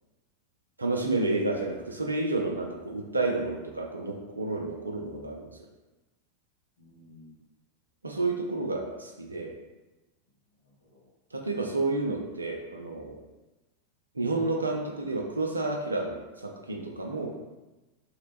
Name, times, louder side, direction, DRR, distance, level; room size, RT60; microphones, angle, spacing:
voice 1, 0.8-5.6 8.0-9.5 11.3-13.2 14.1-17.3, right 2 dB, 80° right, 1 dB, 0.4 m, -30 dB
voice 2, 6.8-7.4 10.5-11.1 17.1-17.3, left 2 dB, 75° left, -2 dB, 0.6 m, -56 dB
2.8 x 2.0 x 3.2 m, 1.1 s
figure-of-eight pair, 90°, 0 cm